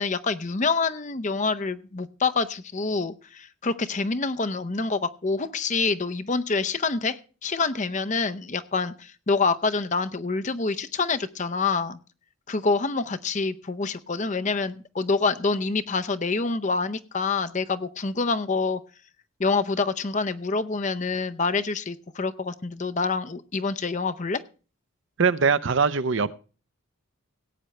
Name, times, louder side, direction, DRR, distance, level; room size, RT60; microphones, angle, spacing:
voice 1, 0.0-12.0 12.5-18.8 19.4-24.4, left 4 dB, 35° left, 11 dB, 0.6 m, -26 dB
voice 2, 25.2-26.3, right 5 dB, 60° right, 15 dB, 0.6 m, -22 dB
17.5 x 9.0 x 3.2 m, 0.35 s
head